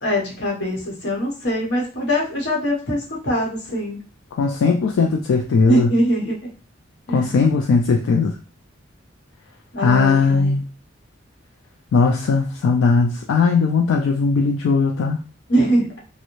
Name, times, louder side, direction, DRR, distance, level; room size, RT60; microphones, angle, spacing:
voice 1, 0.0-4.0 5.6-6.4 7.1-7.3 9.7-10.5 15.5-15.9, equal, 60° left, -3 dB, 0.9 m, -22 dB
voice 2, 4.3-5.9 7.1-8.3 9.8-10.6 11.9-15.2, left 4 dB, 75° left, 2 dB, 0.3 m, -18 dB
2.5 x 2.1 x 2.9 m, 0.37 s
head